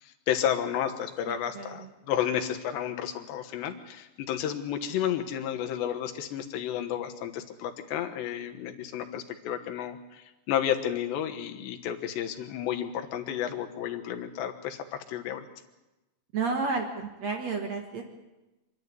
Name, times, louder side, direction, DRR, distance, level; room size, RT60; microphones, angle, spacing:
voice 1, 0.0-15.5, left 10 dB, 75° left, 5 dB, 3.4 m, -32 dB
voice 2, 1.3-1.9 16.3-18.0, right 4 dB, 65° right, 3 dB, 1.7 m, -32 dB
26.0 x 11.0 x 9.5 m, 1.0 s
omnidirectional pair, 5.2 m